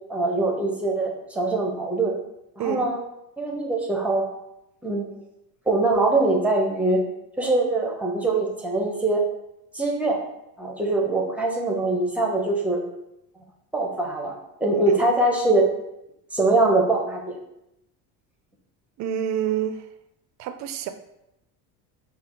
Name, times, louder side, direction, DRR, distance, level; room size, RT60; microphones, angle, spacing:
voice 1, 0.1-2.1 2.6-3.0 3.4-4.3 4.8-5.2 5.7-7.0 7.4-9.2 9.7-10.2 10.6-12.8 13.7-14.3 14.6-15.7 16.3-17.4, right 2 dB, 5° right, 0 dB, 0.7 m, -23 dB
voice 2, 2.6-2.9 14.9-15.0 19.0-19.9 20.4-20.9, right 9 dB, 45° right, 8 dB, 0.5 m, -28 dB
5.8 x 2.1 x 3.7 m, 0.85 s
supercardioid pair, 115°, 41 cm